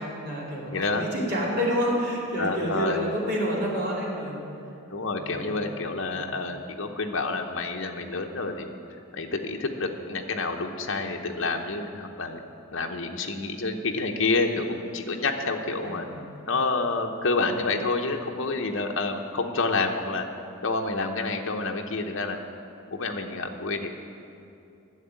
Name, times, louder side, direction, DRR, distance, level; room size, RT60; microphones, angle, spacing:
voice 1, 0.0-4.4 5.1-5.7 6.1-6.3 15.8-16.3, equal, 45° right, -4 dB, 2.8 m, -29 dB
voice 2, 0.7-1.0 2.4-3.0 4.9-8.7 9.1-12.4 12.7-14.7 14.9-16.1 16.5-20.3 20.6-22.4 22.9-23.9, left 3 dB, 60° left, 3 dB, 0.9 m, -28 dB
10.5 x 7.2 x 8.9 m, 2.7 s
head